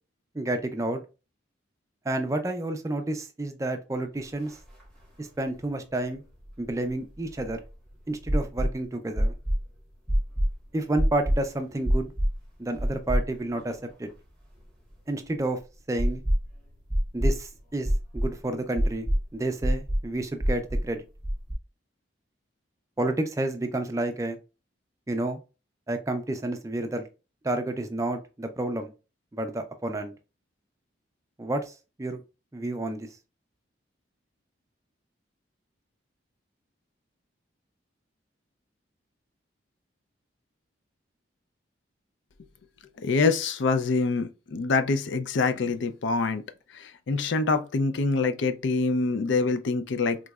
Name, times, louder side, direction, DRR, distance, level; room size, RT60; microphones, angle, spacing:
voice 1, 0.3-1.0 2.1-4.6 5.2-6.2 6.6-7.6 8.1-9.3 10.7-12.1 12.6-14.1 15.1-15.6 15.9-16.2 17.1-19.1 19.3-21.0 23.0-24.4 25.1-25.4 25.9-27.0 27.4-28.9 29.3-30.1 31.4-32.2 32.5-33.1, right 2 dB, 15° right, 0.3 m, -30 dB
sound 1, 4.5-4.6 4.8-4.9 6.4-7.7 8.3-8.7 9.2-9.6 10.1-10.5 11.0-11.4 11.8-12.4 12.8-13.6 13.9-14.0 16.0-16.5 16.9-17.4 17.8-18.3 18.8-19.2 19.6-20.0 20.4-20.9 21.2-21.5, equal, 5° left, 0.9 m, -25 dB
voice 2, 43.0-46.4 46.7-50.2, left 4 dB, 70° left, 0.4 m, -25 dB
3.6 x 3.0 x 2.3 m
head